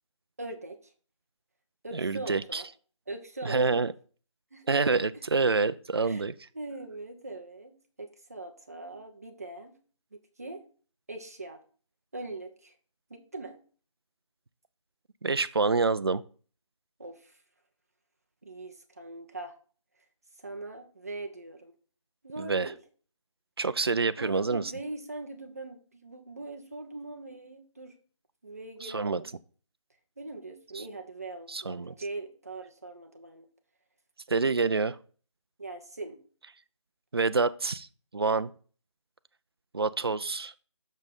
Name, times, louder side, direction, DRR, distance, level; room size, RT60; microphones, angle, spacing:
voice 1, 0.4-0.9 1.8-2.7 3.1-3.8 4.5-4.7 4.9-5.2 6.0-6.2 6.5-9.8 10.1-10.6 11.1-11.6 12.1-12.7 13.1-13.6 17.0-17.4 18.4-19.6 20.4-21.7 22.2-22.8 24.2-27.9 28.4-29.3 30.2-33.5 35.6-36.2, right 2 dB, 30° right, 4 dB, 0.8 m, -41 dB
voice 2, 1.9-2.6 3.4-3.9 4.7-6.3 15.2-16.2 22.4-22.7 23.6-24.7 28.8-29.2 31.5-31.9 34.3-35.0 37.1-37.9 38.1-38.5 39.7-40.5, right 4 dB, 50° right, 13 dB, 0.4 m, -27 dB
6.3 x 5.3 x 5.3 m, 0.41 s
figure-of-eight pair, 180°, 16 cm